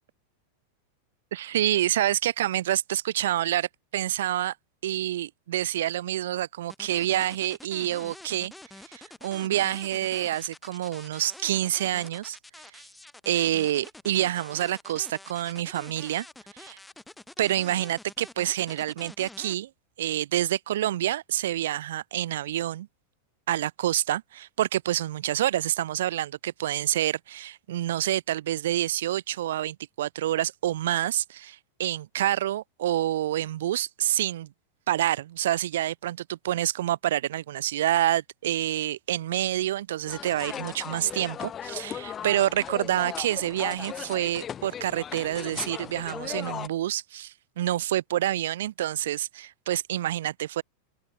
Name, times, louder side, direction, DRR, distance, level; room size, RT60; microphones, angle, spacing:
voice 1, 1.3-4.5 4.8-8.5 8.9-12.4 12.7-12.8 13.3-16.3 16.5-16.8 17.4-19.7 20.0-22.9 23.5-34.5 34.9-50.6, right 13 dB, 80° right, 1.9 m, -27 dB
sound 1, 6.7-19.5, left 2 dB, 5° left, 2.1 m, -47 dB
sound 2, 40.1-46.7, left 9 dB, 25° left, 0.7 m, -37 dB
open air
supercardioid pair, 135°, 0 cm